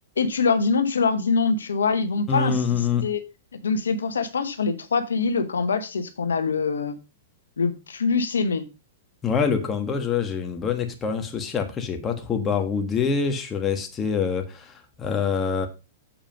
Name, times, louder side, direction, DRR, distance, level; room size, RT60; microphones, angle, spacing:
voice 1, 0.2-3.2 3.6-7.0 7.6-8.6, left 4 dB, 90° left, 1.1 m, -24 dB
voice 2, 2.3-3.0 9.2-15.7, left 6 dB, 20° left, 1.5 m, -25 dB
7.5 x 5.0 x 5.2 m
hypercardioid pair, 125°, 0 cm